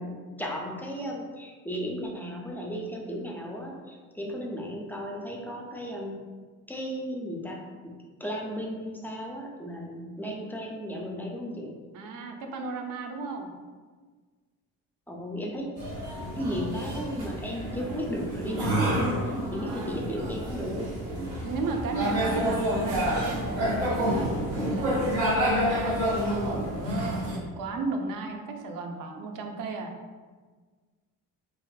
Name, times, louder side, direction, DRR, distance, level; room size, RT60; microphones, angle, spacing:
voice 1, 0.0-6.2 6.7-7.9 8.2-11.7 15.1-15.6 16.3-20.9, equal, 5° left, -1 dB, 0.3 m, -35 dB
voice 2, 11.9-13.5 19.5-20.0 21.4-26.0 26.2-29.9, right 3 dB, 50° right, 4 dB, 0.5 m, -35 dB
sound 1, 15.8-27.4, equal, 85° right, 0.8 m, -29 dB
2.5 x 2.4 x 2.2 m, 1.4 s
hypercardioid pair, 55°, 42 cm